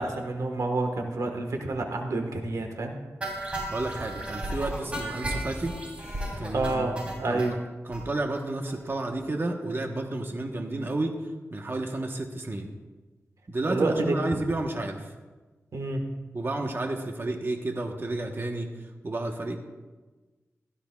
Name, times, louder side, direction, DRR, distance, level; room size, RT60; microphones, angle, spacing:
voice 1, 0.0-2.9 6.5-7.6 13.7-14.4 15.7-16.0, right 2 dB, 85° right, 4 dB, 1.4 m, -28 dB
sound 1, 3.2-7.5 7.9-8.0 8.4-8.5 8.7-8.8 9.1-9.2, right 1 dB, 20° right, 3.3 m, -34 dB
voice 2, 3.7-5.7 6.4-6.7 7.2-7.4 7.8-11.2 11.5-12.7 13.5-15.1 16.3-19.6, right 2 dB, 45° right, 3 dB, 1.1 m, -31 dB
16.5 x 13.0 x 2.4 m, 1.3 s
wide cardioid pair, 80°, 5 cm